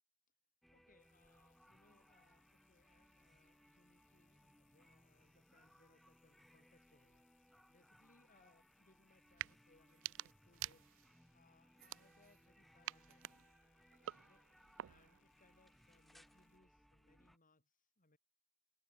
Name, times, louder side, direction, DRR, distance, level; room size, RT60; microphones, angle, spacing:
sound 1, 0.6-17.4, equal, ahead, 1.5 m, -69 dB
voice 1, 0.7-10.9 11.3-13.5 14.3-18.2, left 2 dB, 40° left, 5.2 m, -73 dB
sound 2, 1.0-16.6, left 11 dB, 60° left, 4.5 m, -81 dB
sound 3, 9.3-9.5 9.9-11.2 11.8-12.5 12.8-15.2, right 14 dB, 60° right, 0.3 m, -49 dB
head